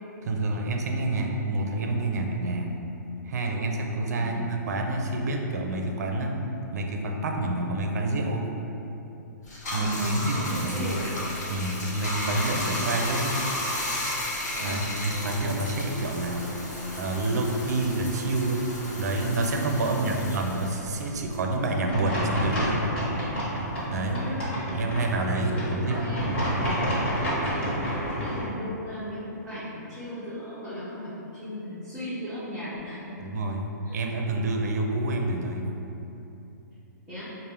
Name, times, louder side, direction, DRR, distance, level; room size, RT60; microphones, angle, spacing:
voice 1, 0.2-2.8 3.2-6.4 6.7-8.5 9.7-11.0 11.5-13.5 14.6-16.5 17.0-18.7 19.0-22.9 23.9-24.2 24.7-26.8 33.2-35.8, right 2 dB, 60° right, 2 dB, 0.4 m, -28 dB
voice 2, 4.2-4.5 9.8-11.2 14.5-14.9 19.8-20.2 23.9-24.9 25.3-26.5 27.3-33.2 33.8-34.0 37.1-37.3, equal, 5° left, -15 dB, 0.5 m, -37 dB
Bathtub (filling or washing), 9.4-22.3 22.6-24.4, left 1 dB, 60° left, 0.9 m, -34 dB
sound 1, 21.9-28.4, equal, 35° left, 1.1 m, -29 dB
4.3 x 2.1 x 3.4 m, 3.0 s
hypercardioid pair, 175°, 10 cm